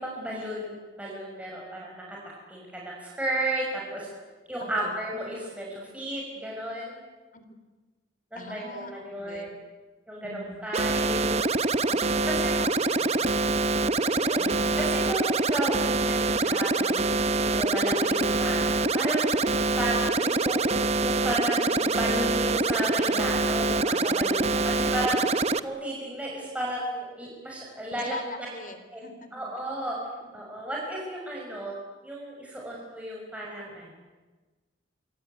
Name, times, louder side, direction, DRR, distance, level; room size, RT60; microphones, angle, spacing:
voice 1, 0.0-2.2 2.5-4.1 4.5-7.0 8.3-9.5 10.1-11.4 11.8-12.5 13.9-17.1 17.4-19.2 19.6-20.7 21.0-25.2 25.6-28.2 28.9-29.0 29.3-30.0 30.3-31.7 32.0-33.9, right 1 dB, 5° right, -4 dB, 6.0 m, -33 dB
voice 2, 4.6-4.9 7.3-7.4 8.4-9.6 10.2-10.7 11.9-13.6 14.4-14.8 27.9-29.3 30.2-30.3, left 2 dB, 45° left, 9 dB, 3.5 m, -43 dB
sound 1, 10.7-25.6, right 3 dB, 35° right, 0.9 m, -25 dB
26.5 x 23.0 x 9.4 m, 1.3 s
head